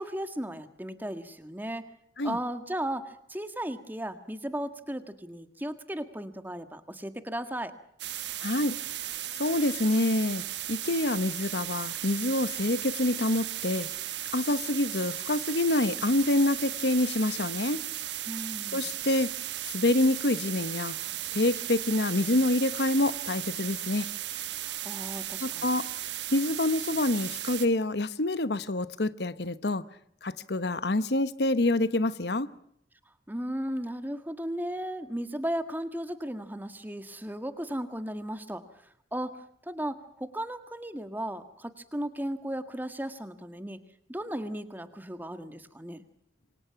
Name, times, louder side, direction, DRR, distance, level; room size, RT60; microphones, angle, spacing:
voice 1, 0.0-1.9 2.2-7.7 18.3-18.9 24.6-25.7 33.3-38.6 39.1-43.8 44.1-46.1, right 1 dB, 10° right, 1.8 m, -35 dB
sound 1, 8.0-27.7, right 13 dB, 75° right, 1.2 m, -36 dB
voice 2, 8.4-8.8 9.4-10.4 10.7-13.9 14.3-17.8 18.7-19.3 19.7-21.0 21.3-24.1 25.4-29.8 30.2-32.5, left 2 dB, 65° left, 1.1 m, -27 dB
28.0 x 24.5 x 5.9 m
head